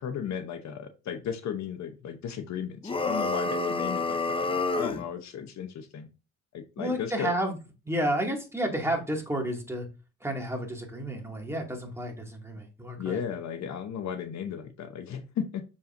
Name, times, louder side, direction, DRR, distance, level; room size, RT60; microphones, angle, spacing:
voice 1, 0.0-6.1 6.5-7.3 13.0-15.6, left 8 dB, 65° left, 8 dB, 0.9 m, -35 dB
sound 1, 2.8-5.1, left 3 dB, 20° left, 0.7 m, -28 dB
voice 2, 6.8-7.6 7.9-9.9 10.2-13.2, right 1 dB, 10° right, 1 dB, 2.3 m, -31 dB
6.7 x 5.4 x 2.6 m, 0.30 s
cardioid pair, 90°, 30 cm